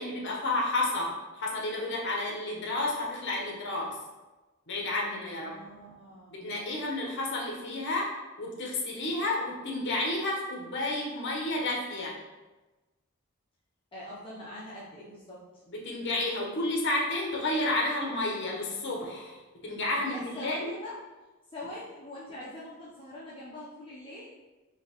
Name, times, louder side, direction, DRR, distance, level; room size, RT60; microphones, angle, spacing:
voice 1, 0.0-4.0 4.7-5.6 6.3-8.1 8.4-12.1 15.7-20.7, left 2 dB, 60° left, -2 dB, 0.9 m, -31 dB
voice 2, 5.4-6.5 13.9-15.6 20.1-21.0 21.5-24.3, left 1 dB, 25° left, -8 dB, 0.6 m, -43 dB
5.0 x 2.8 x 2.9 m, 1.1 s
head